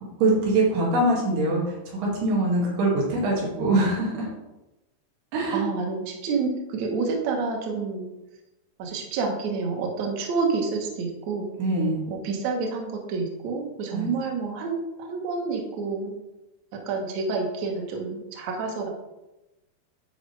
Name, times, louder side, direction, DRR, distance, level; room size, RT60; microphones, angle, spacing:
voice 1, 0.2-1.6 2.0-4.3 5.3-5.6 11.6-12.0 13.9-14.0, right 2 dB, 65° right, -4 dB, 4.1 m, -23 dB
voice 2, 5.5-8.1 8.8-11.5 12.1-16.1 16.9-18.9, right 4 dB, 90° right, 1 dB, 1.6 m, -28 dB
12.0 x 5.3 x 3.3 m, 0.98 s
omnidirectional pair, 5.2 m